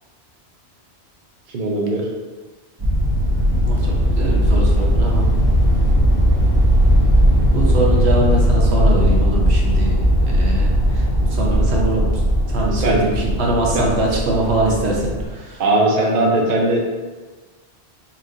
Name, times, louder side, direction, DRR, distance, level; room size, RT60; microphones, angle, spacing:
voice 1, 1.5-2.1 12.7-13.0 13.7-13.8 15.6-16.8, right 2 dB, 55° right, -1 dB, 0.7 m, -19 dB
sound 1, 2.8-15.2, equal, 25° right, 0.8 m, -17 dB
voice 2, 3.6-5.3 7.5-12.2 12.5-15.6, right 2 dB, 70° right, -2 dB, 1.1 m, -23 dB
4.4 x 2.5 x 3.8 m, 1.3 s
omnidirectional pair, 1.1 m